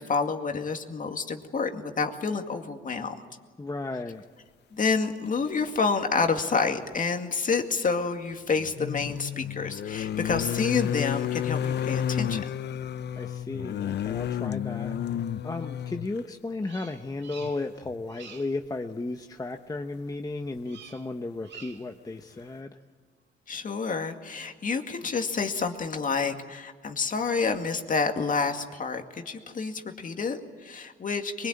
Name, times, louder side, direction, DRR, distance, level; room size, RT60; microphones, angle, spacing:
voice 1, 0.0-3.1 4.7-12.4 23.5-31.5, left 4 dB, 40° left, 5 dB, 2.2 m, -28 dB
voice 2, 3.6-4.3 13.2-14.9 15.4-22.8, left 2 dB, 20° left, 5 dB, 1.0 m, -34 dB
sound 1, 6.2-6.3 8.5-16.2 17.4-17.5 17.8-18.0, left 9 dB, 60° left, 0.6 m, -31 dB
Bird vocalization bird call bird song, 16.6-17.8 18.1-18.6 20.6-21.1 21.4-22.0, right 6 dB, 65° right, 2.3 m, -48 dB
23.0 x 21.5 x 8.9 m, 1.4 s
cardioid pair, 90°, 20 cm